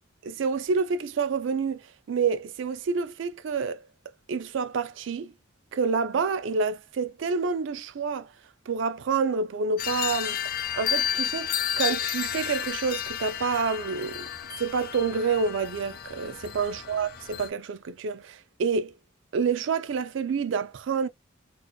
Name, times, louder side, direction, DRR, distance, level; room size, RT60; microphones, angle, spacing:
voice 1, 0.2-3.8 4.3-5.3 5.7-8.3 8.7-10.4 10.7-14.3 14.6-18.9 19.3-21.1, right 5 dB, 70° right, 0.4 m, -28 dB
sound 1, 9.8-17.5, left 10 dB, 50° left, 0.5 m, -32 dB
2.4 x 2.2 x 2.3 m
head